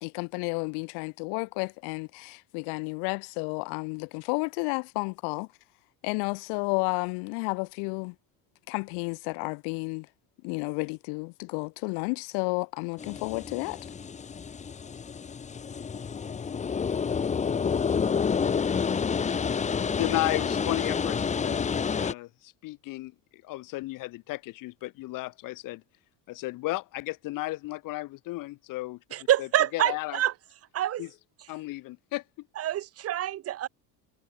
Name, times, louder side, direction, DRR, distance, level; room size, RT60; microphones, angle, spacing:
voice 1, 0.0-5.5 6.0-8.1 8.7-10.1 10.4-13.8, left 37 dB, 80° left, 1.7 m, -31 dB
sound 1, 13.0-22.1, left 6 dB, 20° left, 0.8 m, -29 dB
voice 2, 20.0-23.1 23.4-25.8 26.3-29.0 29.4-29.5 29.7-30.2 31.0-31.1 31.5-32.5, left 19 dB, 55° left, 1.0 m, -34 dB
voice 3, 29.1-30.3 30.7-31.1 32.6-33.7, right 12 dB, 40° right, 0.8 m, -26 dB
cardioid pair, 125°, 39 cm